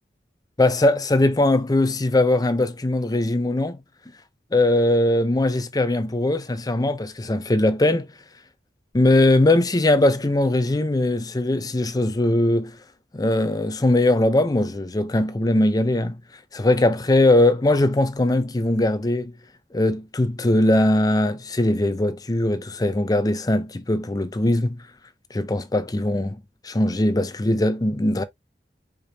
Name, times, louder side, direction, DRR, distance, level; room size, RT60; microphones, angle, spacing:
voice 1, 0.6-3.8 4.5-8.1 8.9-12.7 13.1-16.2 16.5-19.3 19.7-24.8 25.3-26.4 26.6-28.2, left 1 dB, 20° left, 0.6 m, -20 dB
5.1 x 3.6 x 2.7 m
head